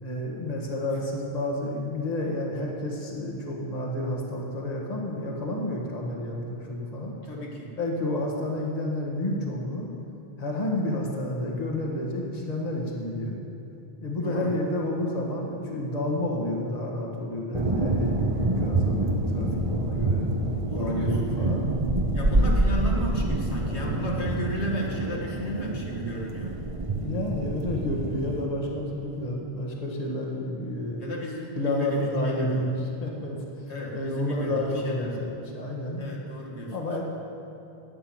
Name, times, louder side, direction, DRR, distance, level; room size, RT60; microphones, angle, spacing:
voice 1, 0.0-7.1 7.8-9.9 10.4-13.4 14.0-20.3 20.7-21.7 22.2-22.3 27.0-31.1 31.6-33.4 33.9-36.0 36.7-37.0, left 1 dB, 35° left, -1 dB, 1.7 m, -30 dB
voice 2, 7.2-7.7 14.2-14.5 20.7-21.6 22.1-26.6 31.0-32.6 33.7-35.3 36.0-36.7, equal, 85° left, -2 dB, 2.1 m, -34 dB
sound 1, 17.5-28.5, right 2 dB, 30° right, 1.1 m, -27 dB
12.5 x 7.9 x 9.1 m, 2.8 s
omnidirectional pair, 1.1 m